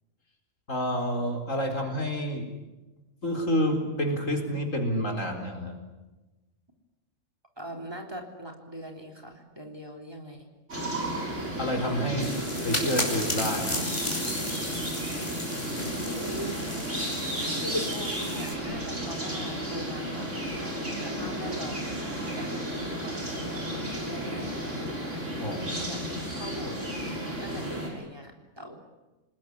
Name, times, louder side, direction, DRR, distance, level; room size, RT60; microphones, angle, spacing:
voice 1, 0.7-2.4 3.2-5.8 11.6-12.4 12.6-13.9 25.4-26.0, equal, 80° left, 2 dB, 4.7 m, -29 dB
voice 2, 7.6-10.5 11.1-11.3 12.2-12.3 15.8-16.6 17.4-20.3 21.0-25.4 25.8-26.0 26.3-26.8 27.4-28.8, equal, 20° right, 2 dB, 3.7 m, -41 dB
sound 1, 10.7-27.9, equal, 70° right, 6.7 m, -33 dB
sound 2, 12.2-18.5, left 1 dB, 20° left, 5.5 m, -34 dB
28.5 x 20.0 x 9.9 m, 1.1 s
omnidirectional pair, 1.3 m